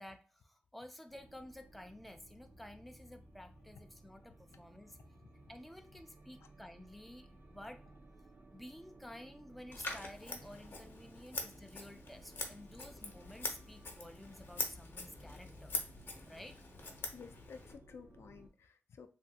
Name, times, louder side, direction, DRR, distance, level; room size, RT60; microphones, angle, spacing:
voice 1, 0.0-5.0 5.5-7.8 8.5-15.9 16.3-16.6, left 1 dB, ahead, 6 dB, 0.4 m, -52 dB
sound 1, 1.1-18.5, right 1 dB, 60° right, 0.6 m, -59 dB
Scissors, 9.7-17.7, left 2 dB, 60° left, 0.7 m, -44 dB
voice 2, 17.1-19.1, left 5 dB, 85° left, 8 dB, 0.4 m, -53 dB
3.1 x 2.5 x 2.7 m, 0.36 s
wide cardioid pair, 100°, 4 cm